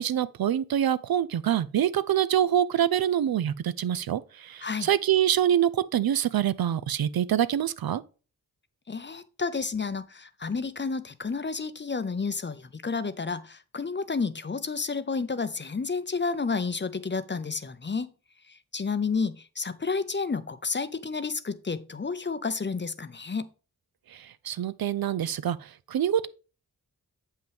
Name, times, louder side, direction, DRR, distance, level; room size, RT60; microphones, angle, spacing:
voice 1, 0.0-8.0 24.1-26.3, right 10 dB, 65° right, 0.5 m, -25 dB
voice 2, 8.9-18.1 18.5-23.5, left 4 dB, 30° left, 0.6 m, -31 dB
7.6 x 5.5 x 3.4 m
cardioid pair, 65°, 38 cm